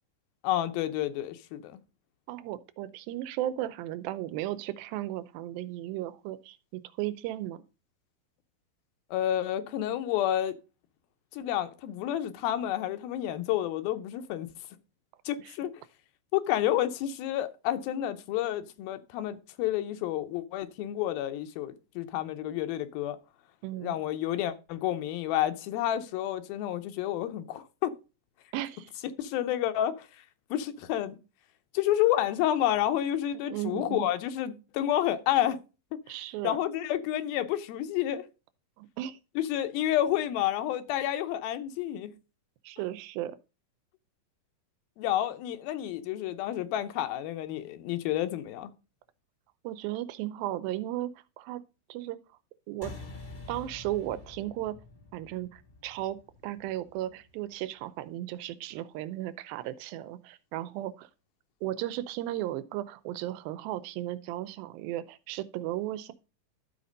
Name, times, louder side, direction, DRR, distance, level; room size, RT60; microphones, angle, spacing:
voice 1, 0.4-1.8 9.1-10.6 11.3-14.5 15.3-15.7 16.3-23.2 23.8-27.9 29.2-30.1 30.5-31.2 31.7-35.6 36.4-38.2 39.4-42.1 45.0-48.7, left 12 dB, 90° left, 2.7 m, -30 dB
voice 2, 2.3-7.6 15.4-15.5 23.6-24.0 28.5-28.9 33.5-34.1 36.1-36.6 38.8-39.2 42.6-43.4 49.6-51.6 51.9-52.2 52.7-52.9 53.5-54.7 55.1-56.2 56.4-61.1 61.6-66.1, right 14 dB, 90° right, 2.5 m, -35 dB
sound 1, 52.8-57.6, left 2 dB, 35° left, 0.7 m, -47 dB
12.5 x 4.3 x 5.2 m
omnidirectional pair, 4.1 m